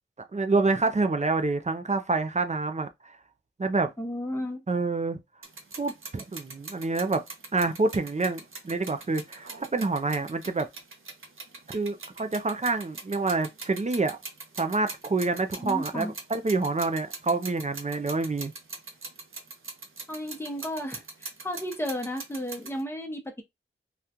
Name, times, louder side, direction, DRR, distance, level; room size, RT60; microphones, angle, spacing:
voice 1, 0.3-3.1 3.6-3.9 4.7-5.2 5.8-7.2 7.5-10.7 11.7-14.2 14.6-18.5, right 3 dB, 35° right, 0.5 m, -27 dB
voice 2, 4.0-4.6 15.6-16.1 20.1-23.4, equal, 10° left, 1.0 m, -33 dB
sound 1, 5.4-22.8, right 3 dB, 75° right, 0.8 m, -42 dB
3.5 x 2.4 x 2.8 m
wide cardioid pair, 70°, 21 cm